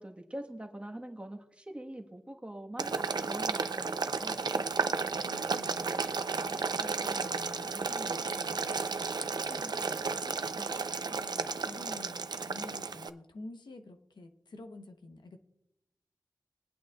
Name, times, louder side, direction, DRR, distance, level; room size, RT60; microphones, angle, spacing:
voice 1, 0.0-2.9 3.2-4.9 7.7-7.9 10.6-10.7, right 1 dB, 15° right, 2 dB, 1.3 m, -44 dB
Boiling, 2.8-13.1, right 4 dB, 65° right, 0.6 m, -33 dB
voice 2, 5.2-8.8 9.1-10.4 11.1-15.4, left 2 dB, 80° left, 6 dB, 0.9 m, -49 dB
22.5 x 8.7 x 2.3 m, 0.87 s
wide cardioid pair, 85°, 8 cm